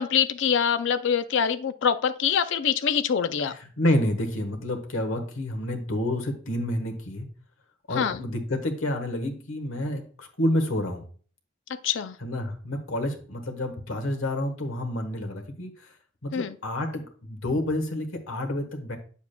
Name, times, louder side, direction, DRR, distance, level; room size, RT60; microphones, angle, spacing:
voice 1, 0.0-3.5 7.9-8.2 11.7-12.2 16.3-16.5, left 7 dB, 65° left, 11 dB, 0.4 m, -25 dB
voice 2, 3.8-7.3 7.9-11.0 12.2-15.9 16.2-19.0, left 1 dB, 85° left, 5 dB, 1.3 m, -29 dB
8.4 x 7.1 x 2.2 m, 0.42 s
head